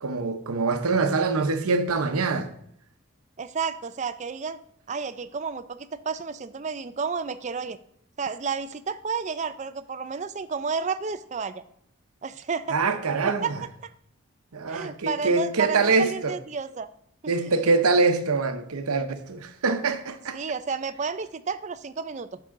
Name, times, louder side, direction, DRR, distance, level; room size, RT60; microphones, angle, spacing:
voice 1, 0.0-2.5 12.7-13.6 14.5-16.3 17.3-20.4, right 4 dB, 85° right, 0.8 m, -24 dB
voice 2, 3.4-4.6 4.9-7.8 8.2-11.6 12.2-12.8 13.2-13.5 13.8-13.9 14.7-16.9 20.3-22.4, right 5 dB, 30° right, 0.4 m, -31 dB
9.7 x 6.7 x 3.7 m
head